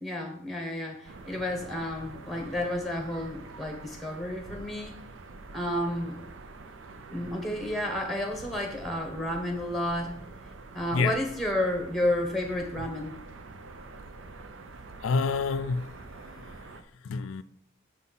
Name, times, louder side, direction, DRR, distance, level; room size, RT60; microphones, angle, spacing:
voice 1, 0.0-5.0 5.5-6.2 7.1-10.2 10.7-13.2, left 1 dB, ahead, 1.2 m, -31 dB
sound 1, 1.0-16.8, right 3 dB, 80° right, 0.6 m, -46 dB
voice 2, 15.0-15.9 16.3-16.4 17.0-17.4, left 4 dB, 90° left, 0.4 m, -27 dB
7.2 x 4.2 x 5.5 m
head